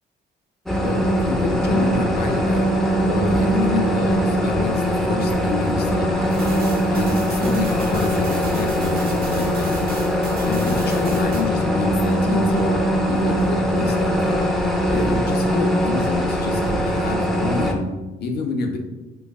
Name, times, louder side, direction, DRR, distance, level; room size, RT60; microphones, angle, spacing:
sound 1, 0.7-17.7, equal, ahead, 0.4 m, -21 dB
voice 1, 0.8-2.7 3.0-6.4 6.9-9.8 10.4-12.8 13.1-14.4 14.9-17.9 18.2-18.8, left 3 dB, 55° left, 3 dB, 0.5 m, -27 dB
sound 2, 6.3-11.4, right 4 dB, 50° right, 0.6 m, -38 dB
3.3 x 2.5 x 2.3 m, 1.1 s
cardioid pair, 90°, 20 cm